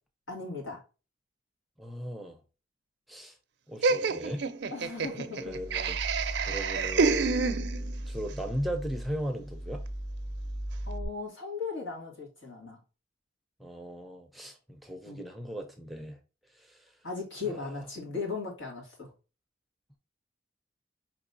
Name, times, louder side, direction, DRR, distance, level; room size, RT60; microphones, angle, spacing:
voice 1, 0.3-0.8 4.7-5.6 10.9-12.8 15.1-15.2 17.0-19.1, left 4 dB, 80° left, 2.1 m, -37 dB
voice 2, 1.8-2.4 3.1-3.4 3.7-4.4 5.1-6.0 6.5-7.3 8.1-9.8 13.6-16.2 16.5-16.9 17.5-17.9, equal, ahead, 0.5 m, -37 dB
Laughter, 3.8-8.1, right 4 dB, 60° right, 0.5 m, -28 dB
sound 1, 5.4-11.0, right 1 dB, 60° left, 1.6 m, -37 dB
5.1 x 3.1 x 2.6 m
head